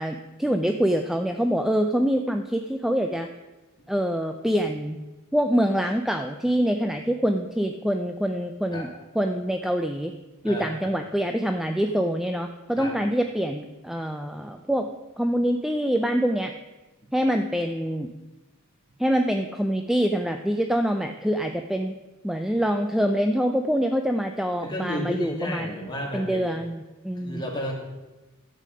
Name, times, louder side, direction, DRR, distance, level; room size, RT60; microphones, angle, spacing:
voice 1, 0.0-3.3 3.9-5.0 5.3-8.9 9.2-10.1 10.4-14.9 15.2-16.5 17.1-18.1 19.0-22.0 22.2-25.7 26.1-27.4, equal, ahead, 5 dB, 0.4 m, -25 dB
voice 2, 10.4-10.9 12.8-12.9 24.6-26.5 27.2-27.8, equal, 20° left, -1 dB, 2.2 m, -32 dB
12.0 x 7.6 x 5.1 m, 1.1 s
head